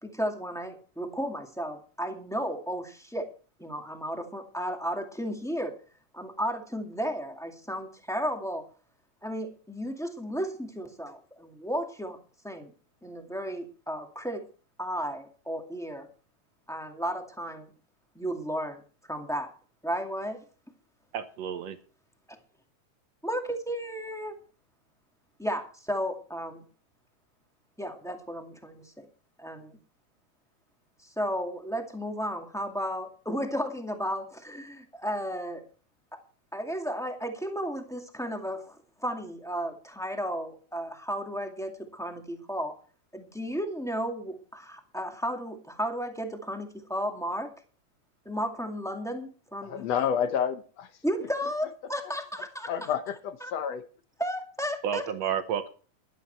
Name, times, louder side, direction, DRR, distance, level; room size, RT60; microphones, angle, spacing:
voice 1, 0.0-3.3 3.6-5.7 6.1-8.6 9.2-12.2 12.4-12.7 13.0-14.4 14.8-16.1 16.7-17.7 18.1-18.8 19.1-19.5 19.8-20.4 23.2-24.4 25.4-26.6 27.8-29.1 29.4-29.8 31.0-35.6 36.5-42.7 43.1-47.5 48.2-49.9 51.0-52.7 53.4-53.5 54.2-55.0, equal, ahead, 3 dB, 1.4 m, -33 dB
voice 2, 21.1-21.8 54.8-55.7, right 8 dB, 65° right, 9 dB, 2.0 m, -31 dB
voice 3, 49.6-50.9 52.7-53.8, left 8 dB, 65° left, 9 dB, 1.9 m, -29 dB
13.0 x 12.0 x 4.5 m, 0.39 s
omnidirectional pair, 3.4 m